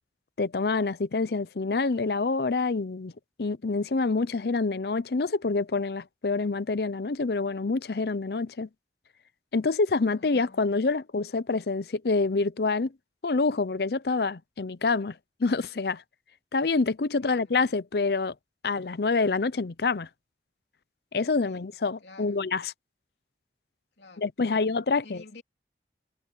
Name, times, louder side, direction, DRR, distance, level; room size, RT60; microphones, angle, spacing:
voice 1, 0.4-3.1 3.4-8.7 9.5-12.9 13.2-16.0 16.5-18.3 18.6-20.1 21.1-22.7 24.2-25.2, left 3 dB, 60° left, 0.6 m, -27 dB
voice 2, 10.0-10.8 17.2-17.6 21.4-21.6 22.0-22.4 24.0-24.7 25.0-25.4, left 3 dB, 75° left, 3.1 m, -51 dB
head